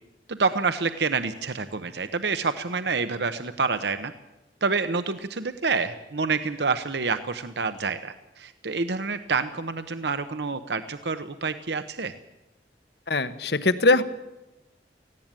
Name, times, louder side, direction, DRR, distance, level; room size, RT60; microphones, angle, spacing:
voice 1, 0.3-4.1 4.6-12.1, right 4 dB, 75° right, 10 dB, 0.9 m, -28 dB
voice 2, 13.1-14.0, left 2 dB, 70° left, 12 dB, 1.1 m, -21 dB
18.5 x 16.0 x 9.0 m, 0.99 s
head